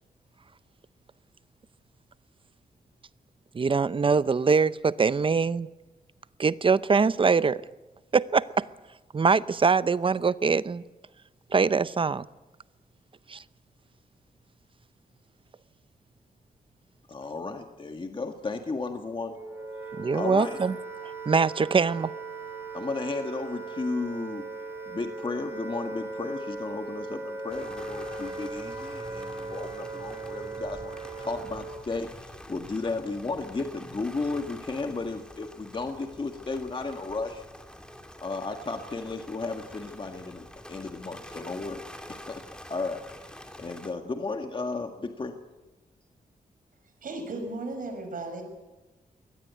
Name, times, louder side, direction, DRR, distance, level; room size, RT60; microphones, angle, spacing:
voice 1, 3.5-5.7 6.4-7.6 8.1-8.6 9.1-10.8 11.5-12.3 13.3-13.4 20.0-20.7 21.3-22.1, right 5 dB, 35° right, 0.7 m, -23 dB
voice 2, 17.1-19.4 19.9-20.6 22.7-24.5 24.9-37.4 38.2-41.8 42.1-42.4 42.7-43.3 43.6-45.4, left 3 dB, 35° left, 1.6 m, -34 dB
Wind instrument woodwind instrument, 19.3-31.9, right 3 dB, 15° right, 4.8 m, -38 dB
sound 1, 27.5-43.9, left 1 dB, 5° left, 2.7 m, -46 dB
voice 3, 47.0-48.4, right 2 dB, 65° right, 6.0 m, -35 dB
23.0 x 18.0 x 9.4 m
wide cardioid pair, 105°, 15 cm